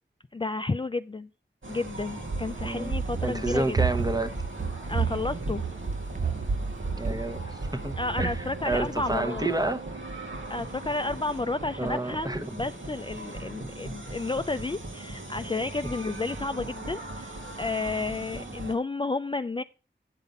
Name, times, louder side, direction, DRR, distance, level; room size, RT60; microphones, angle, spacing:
voice 1, 0.3-1.3 1.7-3.8 4.9-5.6 8.0-9.4 10.5-17.3 17.6-19.6, left 3 dB, 25° left, 0.4 m, -31 dB
sound 1, 1.6-18.7, right 1 dB, 85° right, 1.7 m, -39 dB
Run, 2.2-9.3, right 5 dB, 40° right, 0.5 m, -31 dB
voice 2, 3.2-4.3 7.0-9.8 11.8-12.4 18.3-18.5, right 2 dB, 20° right, 0.9 m, -30 dB
9.1 x 5.6 x 5.3 m
wide cardioid pair, 50°, 20 cm